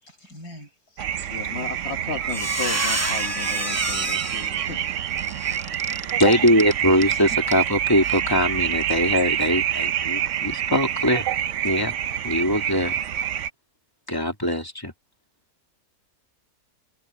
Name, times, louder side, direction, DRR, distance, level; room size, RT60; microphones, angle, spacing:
voice 1, 0.0-1.5 7.3-7.4, equal, 80° left, 8.1 m, -44 dB
sound 1, 1.0-13.5, right 10 dB, 60° right, 1.0 m, -27 dB
voice 2, 1.3-4.8, left 5 dB, 45° left, 1.5 m, -34 dB
Squeak, 1.7-1.9 2.2-7.2 7.5-7.6 8.0-8.2, right 2 dB, 15° right, 0.8 m, -29 dB
voice 3, 6.2-11.3 11.6-11.9 12.2-12.9 14.1-14.9, equal, 15° left, 2.7 m, -21 dB
omnidirectional pair, 1.6 m